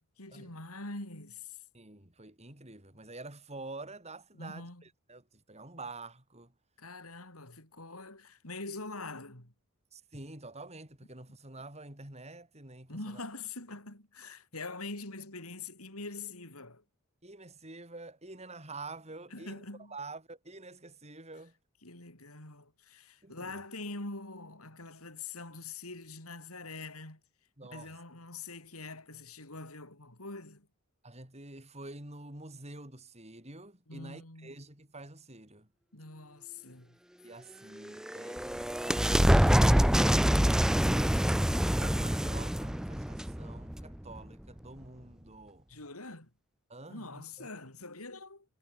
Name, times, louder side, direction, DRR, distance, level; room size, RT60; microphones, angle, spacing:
voice 1, 0.0-1.6 4.3-4.8 6.8-9.5 12.9-16.8 19.3-20.0 21.8-27.2 27.7-30.7 33.9-34.6 35.9-37.0 45.7-46.3 46.9-48.5, left 3 dB, 80° left, 7.2 m, -44 dB
voice 2, 1.7-6.5 9.9-13.2 17.2-19.6 19.9-21.5 23.2-23.6 27.6-28.0 31.0-35.7 37.2-39.4 40.3-45.7 46.7-47.5, right 2 dB, 30° right, 5.4 m, -48 dB
sound 1, 37.8-44.2, equal, 5° right, 0.4 m, -26 dB
head